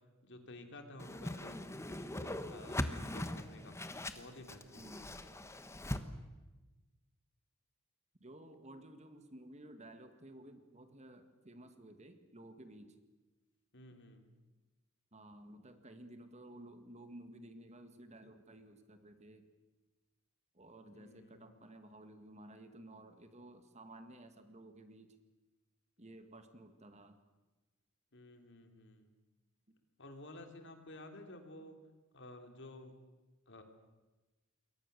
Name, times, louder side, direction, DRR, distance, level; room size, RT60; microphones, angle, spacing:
voice 1, 0.2-3.8 4.1-4.9 13.7-14.3 20.9-21.5 28.1-29.1 30.0-31.8 32.1-32.9 33.5-33.6, left 1 dB, 55° left, 5 dB, 3.2 m, -53 dB
Whoosh swoosh swish, 1.0-6.0, left 1 dB, 15° left, 1.2 m, -41 dB
voice 2, 4.8-5.2 8.2-13.0 15.1-19.5 20.5-25.2 26.0-27.2, right 1 dB, 30° right, 8 dB, 1.9 m, -54 dB
28.5 x 22.5 x 6.8 m, 1.2 s
head